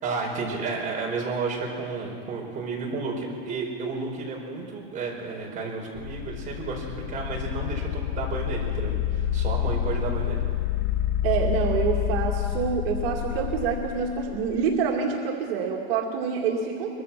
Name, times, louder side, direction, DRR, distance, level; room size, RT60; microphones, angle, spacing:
voice 1, 0.0-10.4, right 4 dB, 25° right, -2 dB, 4.8 m, -32 dB
sound 1, 6.0-14.7, left 10 dB, 40° left, 0.7 m, -28 dB
voice 2, 11.2-17.0, right 6 dB, 70° right, 0 dB, 2.4 m, -26 dB
23.5 x 22.0 x 6.1 m, 2.3 s
supercardioid pair, 165°, 31 cm